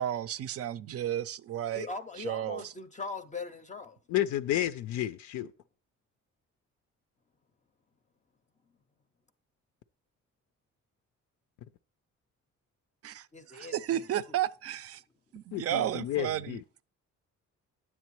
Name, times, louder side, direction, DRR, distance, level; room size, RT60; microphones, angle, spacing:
voice 1, 0.0-1.9 2.2-2.6 13.0-15.0 15.3-16.8, right 11 dB, 50° right, 0.4 m, -33 dB
voice 2, 1.7-4.0 13.3-14.4, left 3 dB, 25° left, 0.5 m, -40 dB
voice 3, 4.1-5.5 15.5-16.8, left 13 dB, 75° left, 0.4 m, -31 dB
9.7 x 7.2 x 3.0 m
cardioid pair, 90°, 30 cm